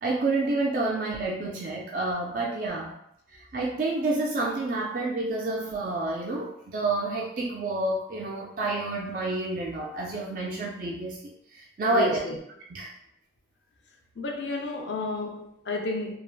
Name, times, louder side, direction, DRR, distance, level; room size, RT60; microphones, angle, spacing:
voice 1, 0.0-2.9 3.3-12.2 12.7-12.9, right 2 dB, 50° right, 0.3 m, -29 dB
voice 2, 11.9-12.4 14.2-16.2, left 2 dB, 85° left, 0.5 m, -31 dB
3.1 x 2.4 x 2.2 m
head